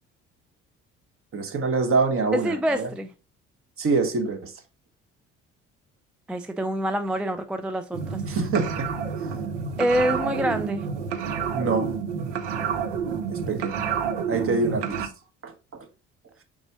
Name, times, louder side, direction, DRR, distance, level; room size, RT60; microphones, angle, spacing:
voice 1, 1.3-2.9 3.8-4.5 8.3-8.9 11.5-11.9 13.3-13.7 14.3-15.1 15.4-15.9, right 4 dB, 40° right, 1.0 m, -25 dB
voice 2, 2.3-3.1 6.3-8.2 9.8-10.9, equal, 5° right, 0.3 m, -26 dB
sound 1, 7.9-15.1, right 6 dB, 85° right, 0.6 m, -29 dB
4.0 x 3.6 x 2.8 m
hypercardioid pair, 55°, 35 cm